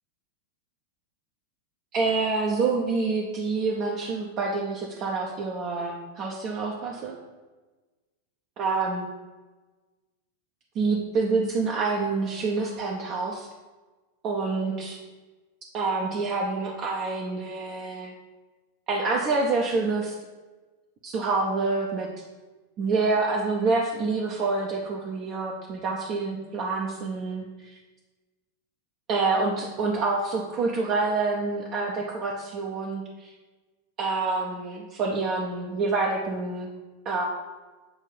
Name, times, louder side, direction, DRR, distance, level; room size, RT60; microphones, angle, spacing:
voice 1, 1.9-7.2 8.6-9.1 10.8-13.5 14.2-15.0 15.7-18.1 18.9-20.1 21.0-22.1 22.8-27.8 29.1-33.3 34.0-36.7 37.0-37.2, right 3 dB, 35° right, -1 dB, 0.6 m, -27 dB
7.0 x 2.7 x 5.5 m, 1.2 s
figure-of-eight pair, 90°, 0 cm